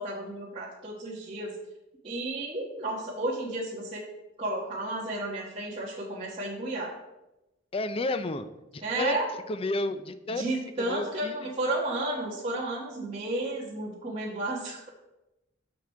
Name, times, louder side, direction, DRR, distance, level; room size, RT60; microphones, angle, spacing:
voice 1, 0.0-1.5 2.0-4.0 4.4-6.9 8.8-9.3 10.3-14.9, right 2 dB, 30° right, -9 dB, 1.5 m, -32 dB
voice 2, 7.7-8.5 8.7-9.2 9.5-10.4 10.8-11.4, left 2 dB, 30° left, 12 dB, 0.4 m, -31 dB
7.2 x 6.0 x 4.6 m, 0.98 s
head